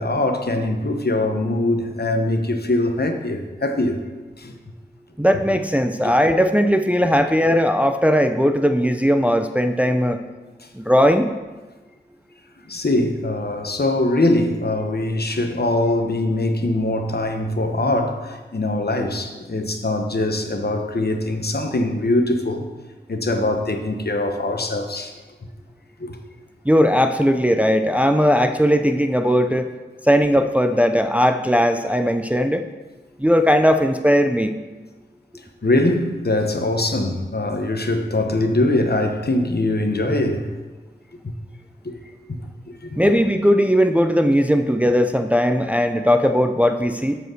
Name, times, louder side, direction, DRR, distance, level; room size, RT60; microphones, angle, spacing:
voice 1, 0.0-4.0 4.4-4.5 6.0-6.1 12.7-22.7 23.1-25.1 26.0-26.2 35.6-40.5 42.3-42.4 42.8-42.9, left 2 dB, 60° left, 1.0 m, -22 dB
voice 2, 5.2-10.2 10.7-11.3 26.7-29.7 30.0-32.6 33.2-34.6 43.0-47.2, equal, 5° right, 0.5 m, -18 dB
7.7 x 5.0 x 6.3 m
wide cardioid pair, 45°, 19 cm